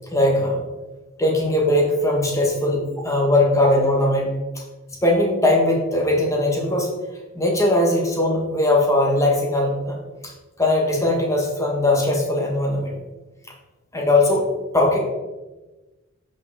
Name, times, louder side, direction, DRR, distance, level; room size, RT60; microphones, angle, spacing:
voice 1, 0.1-0.6 1.2-4.3 4.5-4.6 5.0-6.9 7.3-10.0 10.2-10.3 10.6-12.9 13.9-14.4 14.7-15.0, left 1 dB, 15° left, 0 dB, 1.6 m, -19 dB
8.1 x 5.6 x 4.2 m, 1.2 s
head